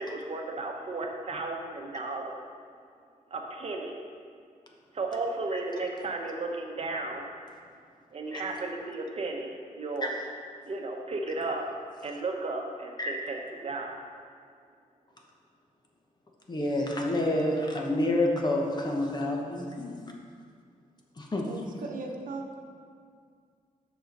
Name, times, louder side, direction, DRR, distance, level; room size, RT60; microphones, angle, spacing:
voice 1, 0.0-2.4 3.3-4.0 4.9-7.3 8.1-10.1 10.6-11.6 12.0-14.0, right 3 dB, 45° right, 2 dB, 0.9 m, -34 dB
voice 2, 16.5-20.0 21.2-21.5, left 1 dB, 30° left, 0 dB, 1.1 m, -28 dB
voice 3, 21.4-22.6, right 3 dB, 70° right, 1 dB, 1.0 m, -38 dB
7.4 x 6.2 x 5.4 m, 2.1 s
wide cardioid pair, 130°, 14 cm